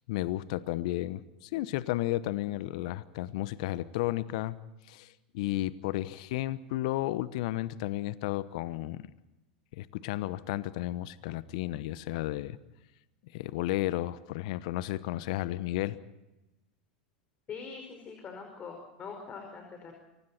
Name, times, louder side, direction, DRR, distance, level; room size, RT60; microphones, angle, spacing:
voice 1, 0.1-4.6 4.9-9.0 9.7-12.6 13.3-16.0, left 15 dB, 60° left, 17 dB, 1.0 m, -33 dB
voice 2, 17.5-19.9, left 5 dB, 30° left, 4 dB, 5.3 m, -43 dB
28.5 x 24.5 x 4.3 m, 0.96 s
figure-of-eight pair, 85°, 4 cm